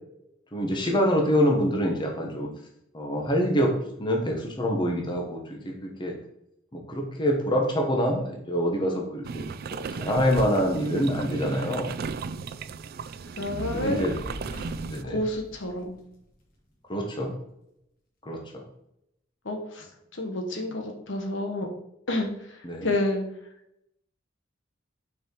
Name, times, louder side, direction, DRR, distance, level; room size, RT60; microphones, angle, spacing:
voice 1, 0.5-2.5 2.9-3.7 4.0-6.1 6.7-11.9 13.7-14.2 14.9-15.2 16.9-17.3 18.2-18.6 22.6-22.9, equal, 25° left, 1 dB, 1.2 m, -26 dB
sound 1, 9.2-15.0, right 5 dB, 50° right, 0.4 m, -35 dB
voice 2, 13.4-14.0 15.0-16.0 19.4-21.7 22.1-23.2, left 1 dB, 70° left, 3 dB, 1.3 m, -30 dB
Fire, 13.8-16.3, equal, 50° left, 2.0 m, -41 dB
6.1 x 4.7 x 4.6 m, 0.79 s
head